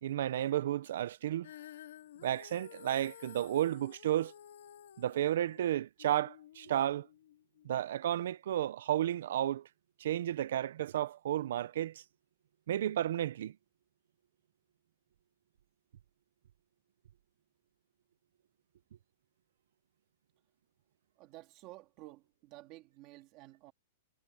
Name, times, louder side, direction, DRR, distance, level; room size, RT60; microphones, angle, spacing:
voice 1, 0.0-1.5 2.2-4.3 5.0-7.1 7.6-9.7 10.0-12.0 12.7-13.5, right 12 dB, 55° right, 0.5 m, -32 dB
Female singing, 1.4-7.7, left 10 dB, 60° left, 2.0 m, -53 dB
voice 2, 21.2-23.7, right 18 dB, 25° right, 2.2 m, -53 dB
supercardioid pair, 180°, 0 cm